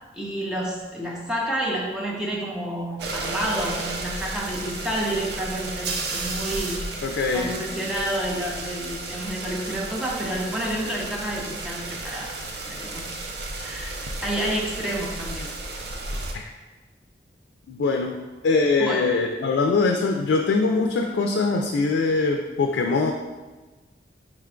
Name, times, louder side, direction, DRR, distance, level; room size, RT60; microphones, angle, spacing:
voice 1, 0.1-6.8 7.3-12.4 12.6-13.0 13.6-15.5 18.8-19.1, right 1 dB, 5° right, -3 dB, 0.6 m, -29 dB
sound 1, 3.0-16.3, right 2 dB, 65° right, 0.5 m, -33 dB
voice 2, 7.0-7.5 16.3-16.5 17.7-18.1 18.4-23.1, left 3 dB, 85° left, 2 dB, 0.3 m, -22 dB
4.9 x 2.2 x 3.6 m, 1.2 s
head